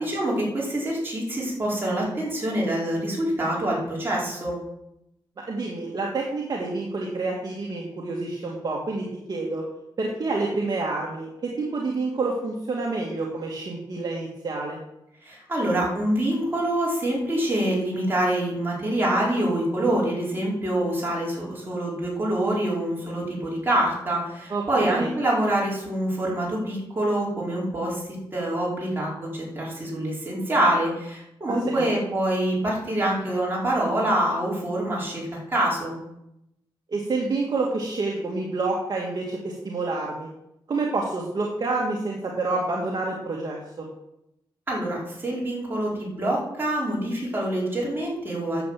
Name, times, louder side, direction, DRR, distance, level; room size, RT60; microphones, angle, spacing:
voice 1, 0.0-4.6 15.2-28.0 28.3-36.0 44.7-48.6, right 1 dB, 25° right, -5 dB, 5.2 m, -25 dB
voice 2, 5.5-9.6 10.0-14.8 24.5-25.1 31.5-31.9 36.9-40.3 40.7-43.9, right 3 dB, 50° right, -2 dB, 2.1 m, -28 dB
10.5 x 7.6 x 7.5 m, 0.84 s
wide cardioid pair, 115°, 9 cm